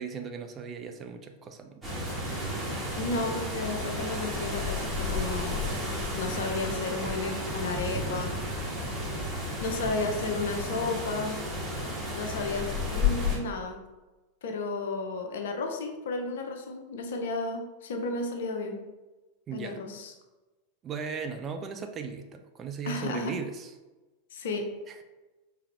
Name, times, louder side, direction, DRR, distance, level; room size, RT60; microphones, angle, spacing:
voice 1, 0.0-1.8 19.5-19.8 20.8-23.7 24.9-25.0, right 6 dB, 25° right, 6 dB, 0.4 m, -37 dB
sound 1, 1.8-13.4, left 2 dB, 10° right, 1.5 m, -32 dB
voice 2, 3.0-5.6 6.2-8.3 9.6-11.4 12.1-13.8 14.4-18.8 19.5-20.1 22.8-23.3 24.3-24.7, left 3 dB, 60° left, 4 dB, 0.6 m, -33 dB
sound 2, 4.6-5.1 5.4-6.1 6.4-7.2 7.5-10.0, left 1 dB, 20° left, 0.6 m, -42 dB
4.9 x 3.4 x 2.9 m, 1.1 s
figure-of-eight pair, 90°, 0 cm